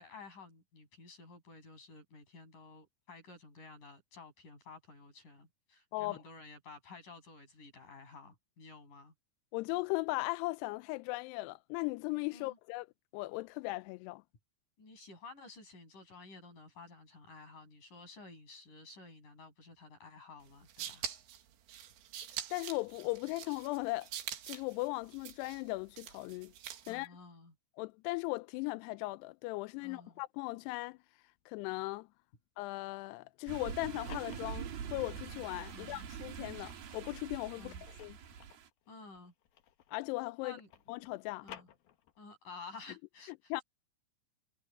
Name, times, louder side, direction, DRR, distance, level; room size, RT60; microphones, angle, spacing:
voice 1, 0.0-9.1 12.3-12.6 14.8-21.1 26.9-27.5 29.8-30.1 35.7-36.1 37.6-37.8 38.9-39.3 40.4-40.7 41.4-41.7 42.2-43.6, left 3 dB, 45° left, 9.1 m, -53 dB
voice 2, 9.5-12.9 13.1-14.2 22.5-24.1 24.5-26.5 26.9-27.1 27.8-31.0 31.5-32.1 32.6-38.2 39.9-40.6 40.9-41.5 43.5-43.6, left 22 dB, 85° left, 2.5 m, -38 dB
sound 1, 20.5-27.1, right 11 dB, 80° right, 4.0 m, -45 dB
sound 2, 33.5-38.7, right 8 dB, 60° right, 3.9 m, -44 dB
sound 3, 33.9-35.8 36.3-40.1 40.4-42.4, left 11 dB, 65° left, 3.0 m, -56 dB
omnidirectional pair, 5.1 m